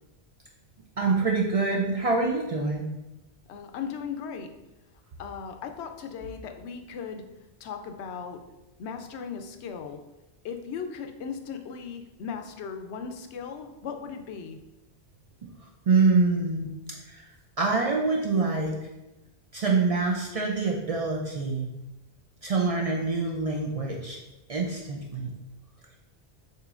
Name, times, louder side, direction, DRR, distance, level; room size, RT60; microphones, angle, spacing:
voice 1, 1.0-2.9 15.4-15.5 15.9-16.7 17.1-17.2 17.6-18.8 19.5-21.7 22.4-24.2 24.5-25.3, right 4 dB, 50° right, -1 dB, 0.4 m, -25 dB
voice 2, 3.5-4.5 5.2-7.2 7.6-8.4 8.8-10.0 10.4-14.6, left 6 dB, 80° left, 6 dB, 0.8 m, -37 dB
6.6 x 2.9 x 2.4 m, 0.98 s
omnidirectional pair, 1.1 m